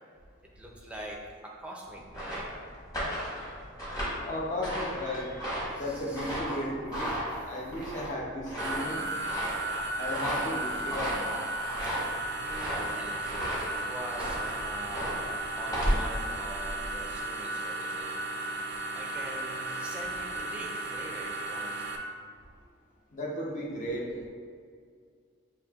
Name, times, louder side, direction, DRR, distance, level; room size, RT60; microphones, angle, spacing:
voice 1, 0.5-2.5 5.7-6.4 11.5-12.0 12.4-18.1 18.9-22.0, right 1 dB, 5° right, -2 dB, 0.5 m, -44 dB
sound 1, 1.9-17.2, equal, 20° left, 1.2 m, -35 dB
voice 2, 4.2-5.3 5.7-9.0 10.0-11.1 23.1-24.3, left 1 dB, 40° left, -2 dB, 0.7 m, -35 dB
sound 2, 8.6-22.0, right 2 dB, 60° right, 0.4 m, -35 dB
6.5 x 2.8 x 2.3 m, 2.1 s
head